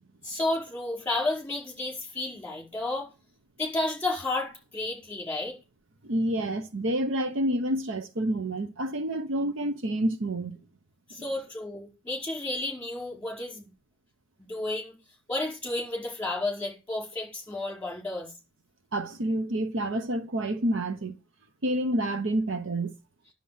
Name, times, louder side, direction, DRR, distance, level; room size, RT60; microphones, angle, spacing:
voice 1, 0.2-3.1 3.6-5.6 11.1-13.7 14.4-15.0 15.3-18.3, left 2 dB, 10° left, 4.7 m, -32 dB
voice 2, 6.0-10.6 18.9-21.1 21.6-22.9, right 1 dB, 60° right, 0.8 m, -28 dB
10.5 x 7.3 x 5.5 m
head